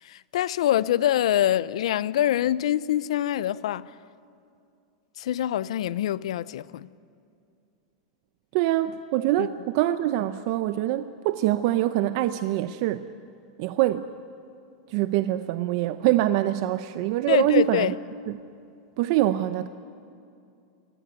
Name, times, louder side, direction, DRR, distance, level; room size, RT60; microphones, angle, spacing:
voice 1, 0.0-3.9 5.2-6.9 9.4-9.5 17.3-17.9, left 12 dB, 75° left, 0.6 m, -25 dB
voice 2, 8.5-13.0 13.6-14.1 14.9-17.9 18.3-18.4 19.0-19.7, right 14 dB, 55° right, 0.7 m, -24 dB
25.5 x 17.0 x 9.5 m
supercardioid pair, 135°, 3 cm